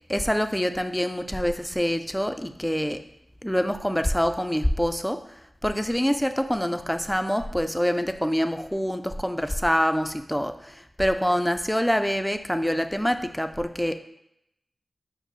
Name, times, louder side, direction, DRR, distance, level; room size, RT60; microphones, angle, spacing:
voice 1, 0.1-3.0 3.4-5.2 5.6-14.0, equal, 5° left, 8 dB, 0.4 m, -25 dB
5.5 x 2.0 x 4.6 m, 0.80 s
cardioid pair, 40°, 0 cm